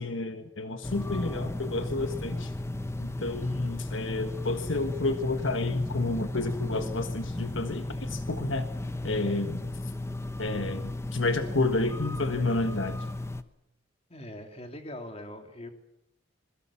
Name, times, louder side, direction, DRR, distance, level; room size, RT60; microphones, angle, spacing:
voice 1, 0.0-2.5 3.0-8.6 9.0-9.7 10.4-13.0, left 2 dB, 70° left, 8 dB, 1.5 m, -30 dB
sound 1, 0.8-13.4, left 1 dB, 15° left, 0.9 m, -35 dB
voice 2, 14.1-15.7, left 1 dB, 30° left, 5 dB, 3.0 m, -41 dB
26.5 x 21.5 x 7.2 m, 0.81 s
head